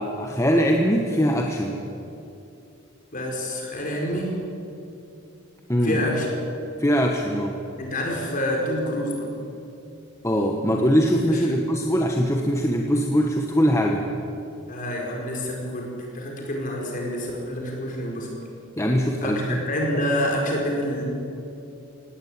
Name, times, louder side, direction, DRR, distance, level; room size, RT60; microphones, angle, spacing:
voice 1, 0.0-1.8 5.7-6.0 6.8-7.6 10.2-14.1 18.8-19.6, equal, 15° left, 1 dB, 1.2 m, -22 dB
voice 2, 3.1-4.4 5.8-6.3 7.8-9.3 11.3-11.6 14.7-18.3 19.2-21.0, equal, 40° left, -1 dB, 4.9 m, -27 dB
18.0 x 17.5 x 8.7 m, 2.7 s
head